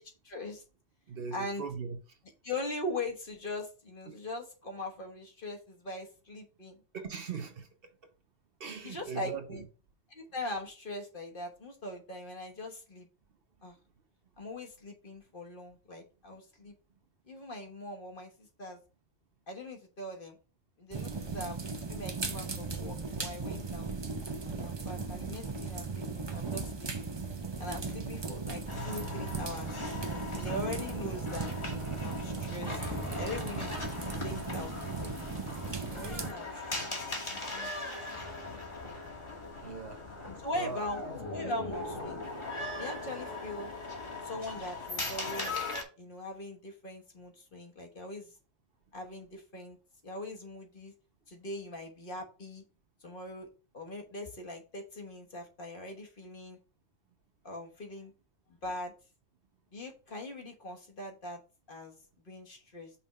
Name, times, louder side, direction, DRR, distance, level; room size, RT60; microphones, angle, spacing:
voice 1, 0.2-0.6 1.3-1.6 2.4-6.8 8.8-9.6 10.1-13.1 13.6-13.8 14.4-16.7 17.3-18.8 19.5-20.4 20.8-21.6 21.9-23.9 24.5-27.1 27.6-29.8 30.3-31.5 32.0-33.8 34.2-34.7 35.0-35.2 35.9-37.0 37.3-38.4 40.4-41.0 41.3-42.2 42.7-43.7 44.2-45.6 46.0-48.3 48.9-49.8 50.0-50.9 51.3-52.6 53.0-53.5 53.7-56.6 57.4-58.1 58.5-58.9 59.7-61.4 61.7-62.0 62.2-62.9, left 1 dB, 45° left, 1.4 m, -41 dB
voice 2, 1.1-2.0 4.1-4.2 6.9-7.7 8.6-9.7 39.6-40.0 40.5-40.9, right 5 dB, 55° right, 1.0 m, -39 dB
sound 1, 20.9-36.3, right 4 dB, 30° right, 0.6 m, -37 dB
sound 2, 28.7-45.8, left 2 dB, 25° left, 1.3 m, -39 dB
5.6 x 3.4 x 5.4 m
omnidirectional pair, 1.2 m